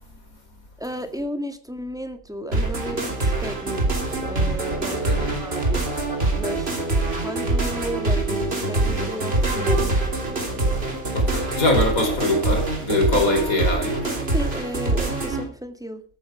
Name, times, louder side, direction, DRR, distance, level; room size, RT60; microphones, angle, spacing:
voice 1, 0.8-5.9 6.4-6.8 7.2-10.1 14.3-16.0, equal, 5° right, 1.8 m, -33 dB
sound 1, 2.5-15.4, right 2 dB, 45° right, 3.6 m, -24 dB
voice 2, 4.9-5.4 11.1-14.2, left 2 dB, 75° left, 4.8 m, -23 dB
14.0 x 14.0 x 4.9 m
omnidirectional pair, 1.5 m